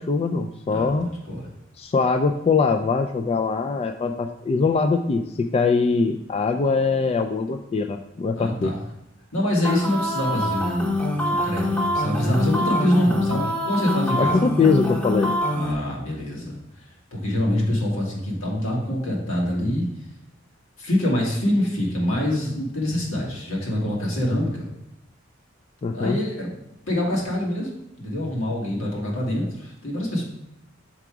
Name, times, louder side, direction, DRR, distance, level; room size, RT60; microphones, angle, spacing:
voice 1, 0.0-1.1 1.8-8.8 14.2-15.4 25.8-26.2, left 4 dB, 30° left, 6 dB, 0.3 m, -22 dB
voice 2, 8.3-8.8 9.3-14.3 15.5-16.9 17.1-19.8 20.8-24.7 25.9-27.7 28.0-30.2, left 1 dB, 80° left, -3 dB, 2.0 m, -25 dB
sound 1, 9.6-15.7, left 1 dB, 5° left, 0.8 m, -25 dB
6.0 x 4.9 x 4.6 m, 0.85 s
head